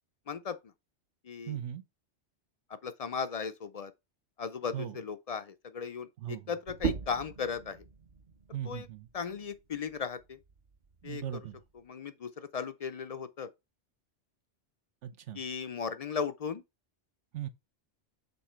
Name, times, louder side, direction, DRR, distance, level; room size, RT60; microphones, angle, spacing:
voice 1, 0.3-0.6 1.2-1.6 2.7-3.9 4.4-7.8 8.6-8.9 9.1-10.4 11.0-11.2 11.9-13.5 15.4-16.6, left 6 dB, 50° left, 0.4 m, -36 dB
voice 2, 1.5-1.8 4.7-5.0 6.2-6.6 8.5-9.1 11.0-11.6 15.0-15.4 17.3-17.5, right 10 dB, 85° right, 1.1 m, -38 dB
sound 1, 6.7-11.9, right 7 dB, 45° right, 0.8 m, -40 dB
6.9 x 3.7 x 4.3 m
omnidirectional pair, 1.2 m